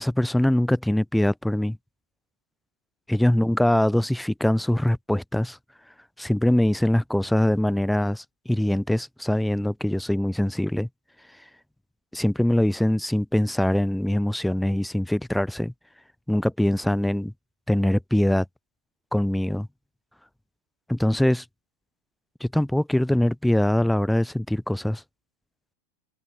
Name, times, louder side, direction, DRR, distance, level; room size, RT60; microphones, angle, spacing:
voice 1, 0.0-1.8 3.1-5.6 6.2-10.9 12.1-15.7 16.3-17.3 17.7-18.4 19.1-19.7 20.9-21.4 22.4-25.0, left 1 dB, ahead, 0.9 m, -23 dB
figure-of-eight pair, 90°, 0 cm